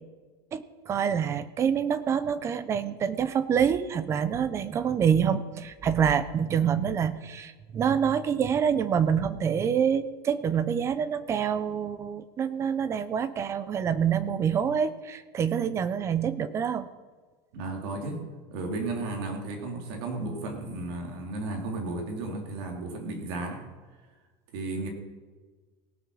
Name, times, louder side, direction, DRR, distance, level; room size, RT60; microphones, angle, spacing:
voice 1, 0.5-16.9, right 7 dB, 20° right, 15 dB, 0.4 m, -26 dB
voice 2, 17.5-18.2 18.5-23.7 24.5-24.9, right 2 dB, 60° right, 3 dB, 2.5 m, -34 dB
18.0 x 6.0 x 6.2 m, 1.4 s
supercardioid pair, 175°, 15 cm